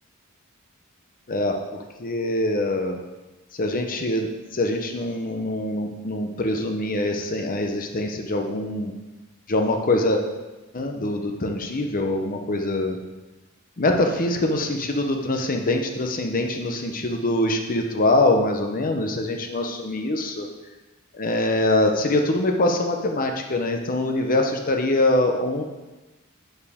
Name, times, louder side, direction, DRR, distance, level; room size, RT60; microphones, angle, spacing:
voice 1, 2.0-3.0 3.5-8.9 9.5-10.2 10.7-13.0 13.8-20.5 21.1-25.6, left 2 dB, 40° left, 3 dB, 0.7 m, -24 dB
9.1 x 6.9 x 3.6 m, 1.1 s
head